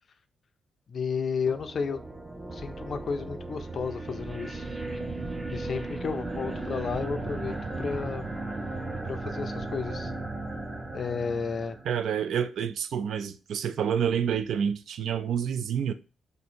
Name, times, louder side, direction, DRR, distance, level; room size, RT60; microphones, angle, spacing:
voice 1, 0.9-2.0 2.5-4.7 5.5-8.2 9.0-10.1 10.9-11.8, left 5 dB, 45° left, 0.4 m, -32 dB
sound 1, 1.5-12.0, right 2 dB, 15° right, 0.5 m, -36 dB
voice 2, 11.8-15.9, right 8 dB, 75° right, 0.3 m, -28 dB
2.8 x 2.6 x 4.1 m
wide cardioid pair, 150°, 0 cm